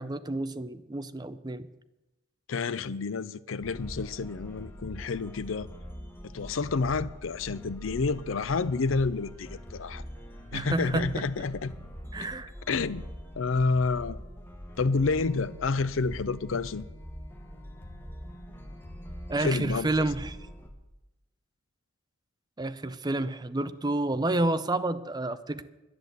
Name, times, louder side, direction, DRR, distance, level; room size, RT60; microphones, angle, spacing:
voice 1, 0.0-1.7 10.5-11.2 12.1-12.5 19.3-20.4 22.6-25.6, right 2 dB, 20° right, 0.6 m, -29 dB
voice 2, 2.5-5.7 6.3-10.0 10.5-11.7 12.7-13.0 13.4-14.2 14.8-16.8 19.4-20.1, left 4 dB, 75° left, 0.6 m, -29 dB
sound 1, 3.6-20.7, equal, 10° left, 1.5 m, -43 dB
10.5 x 10.5 x 8.0 m
head